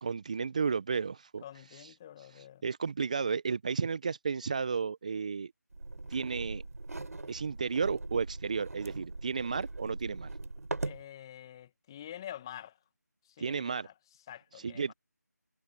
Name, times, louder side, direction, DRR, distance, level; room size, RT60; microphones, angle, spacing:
voice 1, 0.0-1.4 1.7-5.5 6.1-6.6 7.3-10.3 13.4-13.9 14.5-14.9, right 5 dB, 25° right, 1.0 m, -33 dB
voice 2, 1.4-2.6 10.8-12.8 13.4-13.9 14.3-14.9, left 11 dB, 15° left, 2.1 m, -47 dB
sound 1, 5.7-11.0, right 2 dB, 60° right, 3.9 m, -40 dB
figure-of-eight pair, 165°, 9 cm